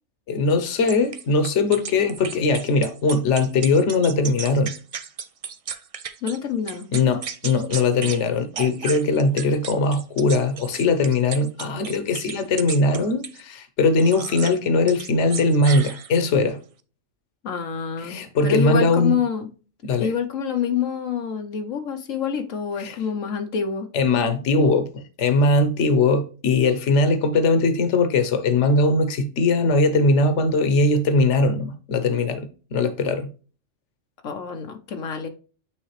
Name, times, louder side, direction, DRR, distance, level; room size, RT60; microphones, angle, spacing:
voice 1, 0.3-4.7 6.9-16.6 18.0-19.2 19.8-20.1 22.8-23.0 23.9-33.3, left 3 dB, 65° left, 1.2 m, -20 dB
sound 1, 0.9-6.4 6.7-8.2 8.5-13.4 14.0-14.6 14.9-16.3, right 6 dB, 65° right, 0.3 m, -34 dB
voice 2, 6.2-6.9 17.4-18.2 18.4-19.5 20.0-23.9 34.2-35.3, left 7 dB, 85° left, 1.2 m, -26 dB
8.9 x 3.6 x 3.2 m
omnidirectional pair, 1.3 m